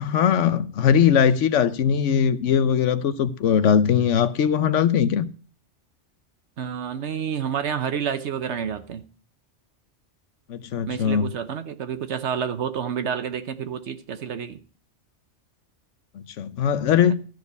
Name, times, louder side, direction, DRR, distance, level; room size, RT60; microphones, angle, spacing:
voice 1, 0.0-5.3 10.5-11.3 16.1-17.1, left 8 dB, 85° left, 1.1 m, -20 dB
voice 2, 6.6-9.0 10.9-14.6 17.1-17.2, right 7 dB, 70° right, 1.1 m, -29 dB
13.5 x 4.8 x 8.0 m
omnidirectional pair, 1.2 m